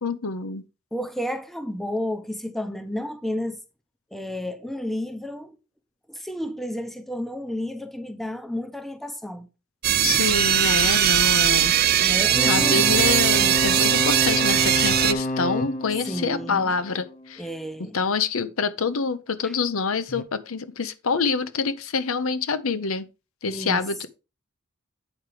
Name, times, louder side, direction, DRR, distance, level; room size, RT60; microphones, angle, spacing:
voice 1, 0.0-0.6 10.0-12.2 12.5-17.4 17.9-23.1 23.4-24.1, left 5 dB, 80° left, 0.8 m, -26 dB
voice 2, 0.9-3.6 4.1-5.6 6.1-9.5 12.0-13.1 13.4-13.6 16.1-16.7 17.4-18.0 19.4-19.5 23.4-23.8, equal, ahead, 0.7 m, -31 dB
sound 1, 9.8-15.1, right 11 dB, 45° right, 0.5 m, -20 dB
sound 2, 12.3-17.3 20.1-20.2, left 1 dB, 35° left, 0.7 m, -28 dB
8.7 x 4.8 x 4.7 m
head